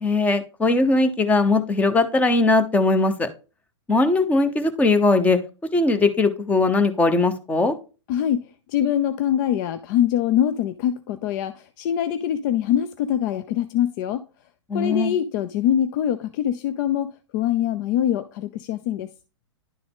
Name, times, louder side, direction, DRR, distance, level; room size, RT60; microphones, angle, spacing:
voice 1, 0.0-3.3 3.9-5.4 5.7-7.8 14.7-15.1, left 3 dB, 10° left, 0.8 m, -19 dB
voice 2, 8.1-14.2 14.7-19.1, left 10 dB, 40° left, 0.5 m, -24 dB
11.0 x 3.8 x 3.5 m
hypercardioid pair, 120°, 15 cm